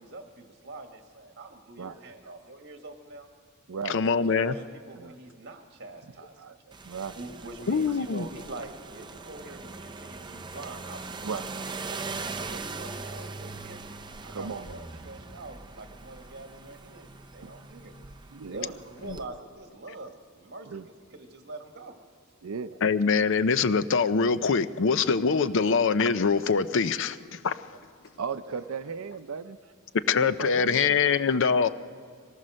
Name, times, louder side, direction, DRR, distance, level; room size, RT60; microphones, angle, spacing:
voice 1, 0.0-3.3 3.9-6.5 7.2-13.9 14.2-17.9 18.5-20.7 21.1-21.9 27.7-27.8 28.3-28.9, right 2 dB, 55° right, 4 dB, 1.9 m, -44 dB
voice 2, 3.9-4.5 7.7-8.3 22.8-27.6 30.1-31.7, left 5 dB, 60° left, 13 dB, 0.6 m, -24 dB
sound 1, 6.7-19.3, right 3 dB, 20° right, 0.7 m, -41 dB
voice 3, 6.9-7.2 9.5-9.6 11.2-11.4 14.3-14.8 17.4-17.7 18.3-18.7 20.7-20.9 22.4-22.8 28.2-29.6 30.2-31.1, right 5 dB, 80° right, 11 dB, 0.6 m, -36 dB
24.0 x 18.5 x 6.4 m, 2.1 s
head